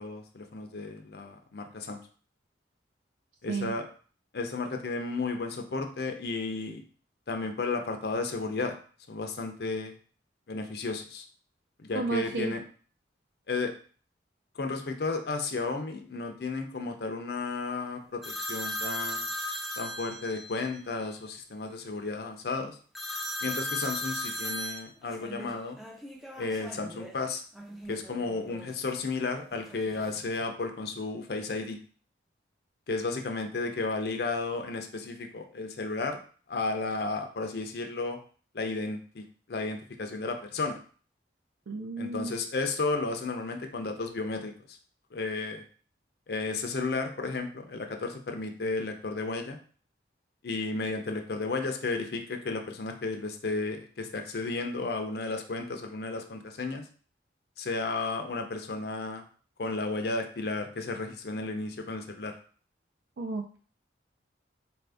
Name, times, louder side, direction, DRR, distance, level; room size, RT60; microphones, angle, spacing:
voice 1, 0.0-2.0 3.4-3.8 4.3-6.8 7.3-8.8 9.1-9.9 10.5-11.3 11.8-12.6 13.5-13.7 14.5-19.3 19.8-22.8 23.4-25.8 26.4-27.4 27.9-31.8 32.9-36.2 36.5-38.2 38.5-40.8 42.0-44.8 45.1-45.6 46.3-49.6 50.4-56.8 57.6-59.2 59.6-62.3, left 3 dB, 60° left, 5 dB, 0.5 m, -33 dB
voice 2, 11.9-12.5 41.7-42.4 63.2-63.6, right 3 dB, 75° right, 2 dB, 0.4 m, -32 dB
sound 1, 18.2-20.7 22.9-27.2 27.5-28.7 29.5-30.4, left 1 dB, ahead, 0.4 m, -37 dB
4.2 x 2.6 x 3.4 m, 0.42 s
head